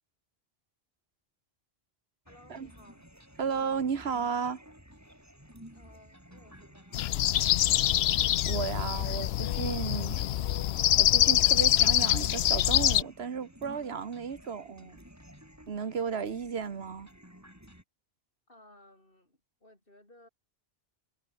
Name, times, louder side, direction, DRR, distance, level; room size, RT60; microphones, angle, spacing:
voice 1, 2.2-3.1 5.7-7.8 18.5-20.3, left 1 dB, 60° left, 6.7 m, -59 dB
sound 1, 2.3-17.8, equal, 15° right, 7.4 m, -54 dB
voice 2, 3.4-4.6 8.1-10.2 11.0-15.0 15.7-17.1, right 6 dB, 85° right, 1.5 m, -34 dB
sound 2, 6.9-13.0, left 12 dB, 80° left, 0.8 m, -25 dB
omnidirectional pair, 1.0 m